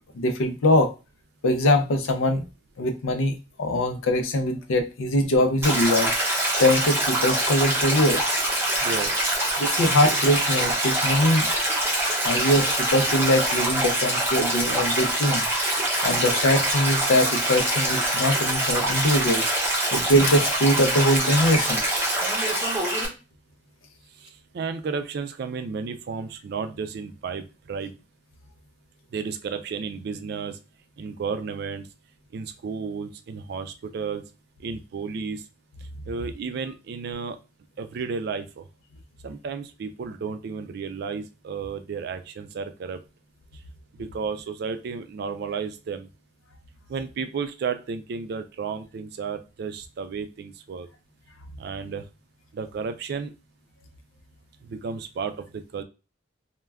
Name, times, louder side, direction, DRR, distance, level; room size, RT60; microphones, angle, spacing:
voice 1, 0.1-0.9 1.4-2.4 2.8-6.1 6.6-8.3 9.6-11.5 12.2-15.5 16.0-19.4 19.9-21.9, left 1 dB, 85° left, 7 dB, 0.5 m, -22 dB
Stream, 5.6-23.1, right 1 dB, 10° right, 0.7 m, -24 dB
voice 2, 8.8-9.3 24.2-28.0 29.1-30.6 31.0-31.9 32.3-34.2 34.6-35.4 36.1-37.4 37.8-38.7 39.2-43.0 44.0-46.1 46.9-50.9 51.6-52.0 52.5-53.3 54.6-55.8, right 5 dB, 55° right, 9 dB, 0.3 m, -33 dB
2.2 x 2.2 x 3.4 m, 0.31 s
head